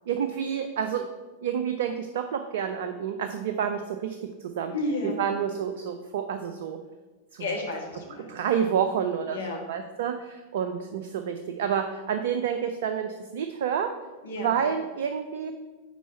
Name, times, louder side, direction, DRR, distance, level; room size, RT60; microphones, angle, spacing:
voice 1, 0.1-1.1 1.4-4.7 5.0-6.8 7.3-7.4 8.3-13.9 14.4-15.5, right 8 dB, 55° right, 7 dB, 0.4 m, -29 dB
voice 2, 4.7-5.2 7.4-8.3 9.3-9.6 14.2-14.6, left 2 dB, 65° left, -1 dB, 1.7 m, -31 dB
6.1 x 4.4 x 5.4 m, 1.3 s
figure-of-eight pair, 90°, 0 cm